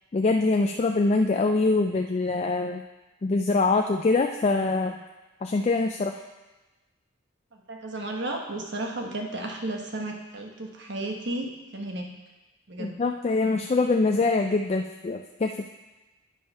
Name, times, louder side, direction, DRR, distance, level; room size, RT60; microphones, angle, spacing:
voice 1, 0.1-2.8 3.2-5.0 5.4-6.2 12.8-15.7, left 3 dB, 30° left, 4 dB, 0.3 m, -24 dB
voice 2, 7.5-11.5 11.7-12.1 12.7-13.0, right 2 dB, 55° right, 1 dB, 1.1 m, -33 dB
8.9 x 5.6 x 5.4 m, 1.1 s
head